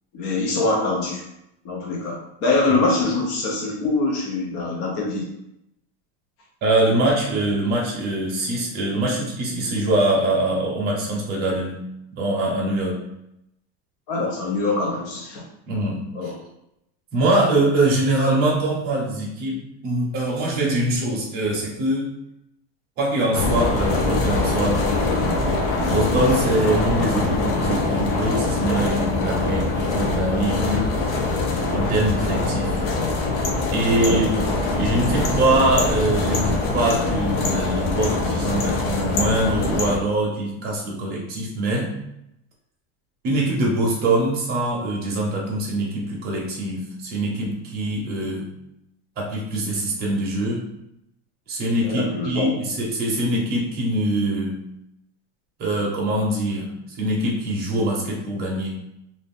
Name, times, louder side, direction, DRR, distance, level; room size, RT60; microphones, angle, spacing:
voice 1, 0.1-1.2 1.6-5.3 14.1-15.5 16.1-16.4 34.0-34.2 51.8-52.5, left 3 dB, 40° left, -2 dB, 0.4 m, -24 dB
voice 2, 6.6-11.8 12.1-13.0 15.7-16.3 17.1-22.1 23.0-24.8 25.9-31.0 31.7-32.8 33.7-42.0 43.2-48.5 49.2-50.6 51.5-54.6 55.6-58.8, right 1 dB, 25° right, -2 dB, 0.7 m, -23 dB
sound 1, 23.3-40.0, left 2 dB, 70° left, 0.7 m, -23 dB
2.5 x 2.5 x 3.5 m, 0.82 s
cardioid pair, 180°, 36 cm